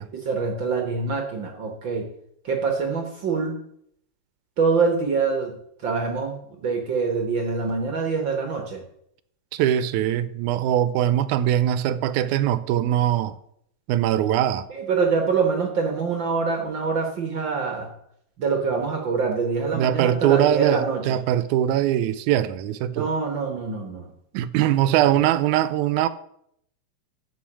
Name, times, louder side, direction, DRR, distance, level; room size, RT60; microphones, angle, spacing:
voice 1, 0.1-2.1 2.4-3.6 4.6-8.8 14.7-17.9 18.4-21.2 22.9-24.1 25.0-25.2, right 4 dB, 50° right, 1.5 m, -25 dB
voice 2, 9.5-13.4 13.9-14.7 19.7-23.1 24.3-26.1, right 11 dB, 90° right, 2.0 m, -22 dB
11.5 x 5.4 x 7.3 m
omnidirectional pair, 3.4 m